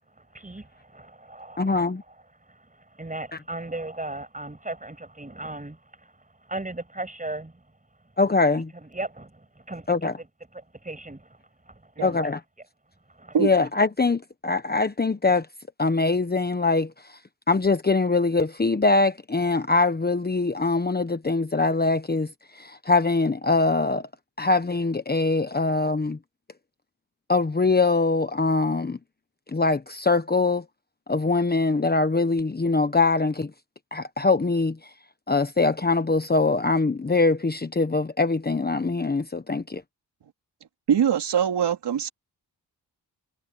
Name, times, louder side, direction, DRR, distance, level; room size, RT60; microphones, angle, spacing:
voice 1, 0.2-8.2 8.5-12.3 12.9-13.4, right 2 dB, 20° right, 7.9 m, -38 dB
voice 2, 1.6-2.0 8.2-8.7 9.9-10.1 12.0-12.4 13.4-15.5 15.8-16.9 17.5-22.3 22.5-24.1 24.4-26.2 27.3-29.0 29.5-30.6 31.1-33.5 33.9-34.8 35.3-39.8, left 3 dB, 25° left, 1.2 m, -23 dB
voice 3, 40.9-42.1, right 8 dB, 80° right, 2.7 m, -22 dB
cardioid pair, 70°, 41 cm